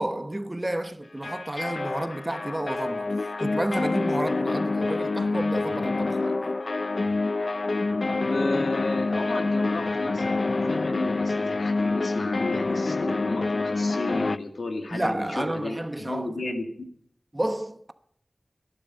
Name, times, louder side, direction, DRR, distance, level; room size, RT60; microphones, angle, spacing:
voice 1, 0.0-3.1 3.4-6.5 14.9-16.4 17.3-17.9, right 1 dB, 20° right, 1.0 m, -31 dB
sound 1, 1.2-14.4, left 3 dB, 55° left, 0.5 m, -27 dB
voice 2, 8.0-16.7, left 2 dB, 80° left, 2.1 m, -32 dB
17.0 x 11.0 x 5.5 m
wide cardioid pair, 65°, 0 cm